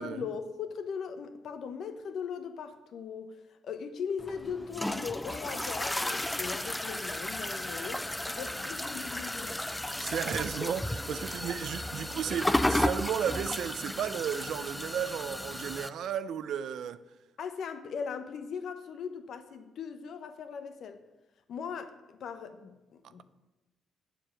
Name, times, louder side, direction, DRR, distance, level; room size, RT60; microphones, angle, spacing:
voice 1, 0.0-3.4 3.6-9.7 17.4-21.0 21.5-23.2, left 6 dB, 65° left, 0.8 m, -39 dB
sound 1, 4.2-15.9, left 1 dB, 10° left, 0.4 m, -33 dB
voice 2, 10.0-17.0, right 9 dB, 70° right, 0.5 m, -34 dB
7.5 x 6.6 x 6.3 m
cardioid pair, 90°, 0 cm